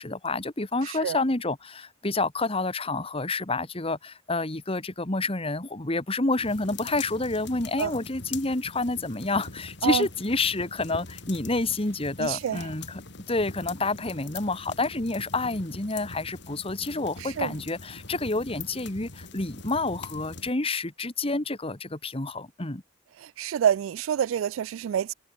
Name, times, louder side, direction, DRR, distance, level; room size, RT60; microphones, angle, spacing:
voice 1, 0.0-13.0 13.3-22.8, left 2 dB, 30° left, 1.7 m, -29 dB
voice 2, 0.8-1.2 7.8-7.9 9.8-10.1 12.2-12.7 17.2-17.5 23.2-25.1, right 9 dB, 80° right, 0.3 m, -27 dB
sound 1, 6.4-20.5, left 3 dB, 60° left, 3.3 m, -43 dB
head